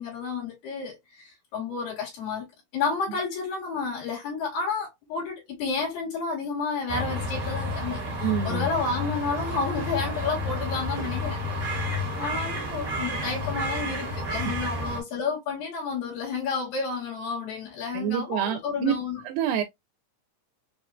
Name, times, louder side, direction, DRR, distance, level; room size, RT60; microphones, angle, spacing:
voice 1, 0.0-2.5 2.7-19.2, left 4 dB, 85° left, 3.4 m, -31 dB
sound 1, 6.9-15.0, left 1 dB, 45° right, 1.2 m, -31 dB
voice 2, 8.2-8.7 17.9-18.9 19.3-19.6, right 10 dB, 90° right, 2.3 m, -27 dB
6.4 x 2.2 x 2.3 m
omnidirectional pair, 3.9 m